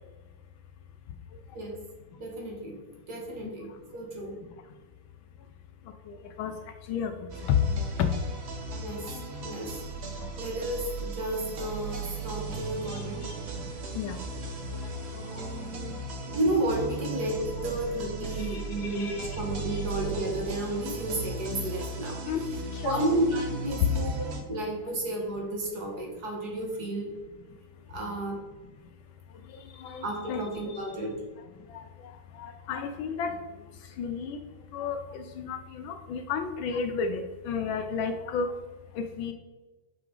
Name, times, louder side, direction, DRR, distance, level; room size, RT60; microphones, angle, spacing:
voice 1, 2.2-2.8 3.1-4.4 8.8-9.7 10.4-13.3 15.1-16.0 16.3-22.2 22.8-27.1 27.9-28.4 30.0-31.2, right 1 dB, 50° right, -1 dB, 1.8 m, -32 dB
voice 2, 6.1-6.5 6.9-7.1 7.5-8.1 10.2-10.3 12.9-13.0 13.9-14.2 18.4-19.4 22.3-22.4 22.7-23.0 23.8-23.9 29.8-30.4 30.7-30.8 31.7-31.8 32.4-33.4 34.0-34.4 34.7-38.5 39.0-39.3, left 6 dB, 75° left, 7 dB, 1.3 m, -31 dB
sound 1, 7.3-24.4, right 3 dB, 75° right, 0.6 m, -37 dB
6.1 x 5.9 x 3.8 m, 1.3 s
omnidirectional pair, 2.4 m